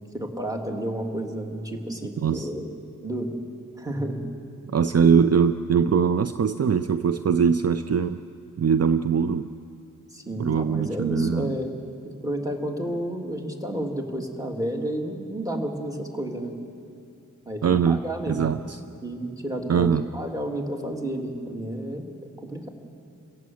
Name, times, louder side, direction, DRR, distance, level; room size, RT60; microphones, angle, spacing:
voice 1, 0.1-2.7 3.0-3.3 3.8-4.3 10.1-11.7 12.2-16.5 17.5-18.4 19.0-19.9 20.1-22.1 22.4-22.7, right 1 dB, 10° right, 2 dB, 2.8 m, -31 dB
voice 2, 4.7-8.2 8.6-9.5 10.4-11.5 17.6-18.0 18.3-18.8 19.7-20.0, right 6 dB, 50° right, 10 dB, 0.6 m, -22 dB
28.0 x 17.0 x 7.8 m, 2.5 s
wide cardioid pair, 90°, 32 cm